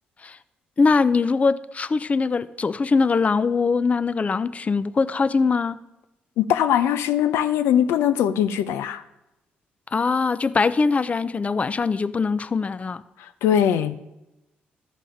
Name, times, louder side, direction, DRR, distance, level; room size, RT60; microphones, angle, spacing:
voice 1, 0.8-5.8 9.9-13.0, left 4 dB, 35° left, 0.5 m, -22 dB
voice 2, 6.4-9.0 13.2-14.0, left 10 dB, 85° left, 0.6 m, -21 dB
13.5 x 5.5 x 5.0 m
supercardioid pair, 65°, 4 cm